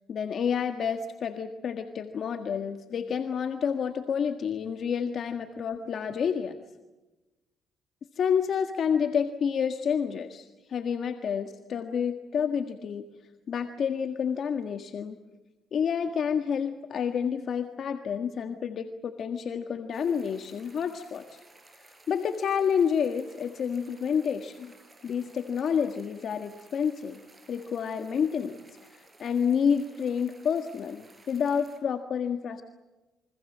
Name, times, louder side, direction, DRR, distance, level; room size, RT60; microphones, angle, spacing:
voice 1, 0.1-6.6 8.2-13.0 13.5-15.2 15.7-21.4 21.9-24.7 25.0-27.2 27.5-28.6 28.9-32.6, left 7 dB, 60° left, 6 dB, 1.6 m, -29 dB
sound 1, 19.9-31.8, right 2 dB, 25° right, 7.0 m, -57 dB
28.5 x 24.5 x 7.5 m, 1.1 s
cardioid pair, 90°, 0 cm